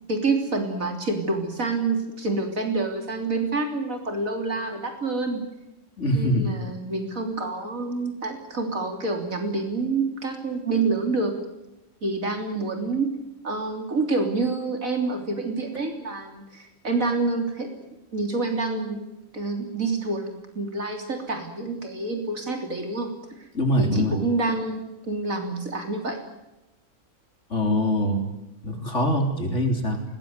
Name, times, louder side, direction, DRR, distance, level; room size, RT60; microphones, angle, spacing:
voice 1, 0.1-5.4 6.1-11.3 12.0-13.1 13.4-17.7 18.1-23.5 23.8-26.2, right 3 dB, 75° right, 4 dB, 3.7 m, -27 dB
voice 2, 6.0-6.6 23.5-24.2 27.5-28.2 28.6-30.0, equal, 60° left, 3 dB, 4.2 m, -23 dB
21.5 x 20.0 x 9.5 m, 0.92 s
omnidirectional pair, 1.4 m